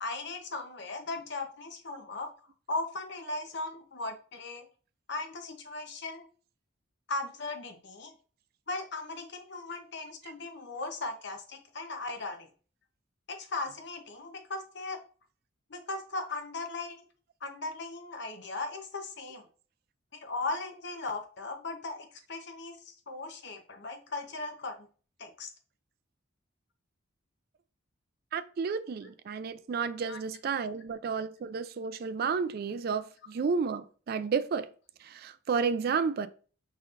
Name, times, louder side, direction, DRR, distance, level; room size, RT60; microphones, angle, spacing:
voice 1, 0.0-2.3 2.7-4.7 5.1-6.3 7.1-8.1 8.7-12.5 13.3-15.0 15.7-17.0 17.4-19.5 20.1-24.9 25.2-25.5 30.1-30.2, left 3 dB, 55° left, 0.8 m, -38 dB
voice 2, 28.3-34.7 35.0-36.3, right 5 dB, 50° right, 0.3 m, -31 dB
5.2 x 4.1 x 2.5 m
head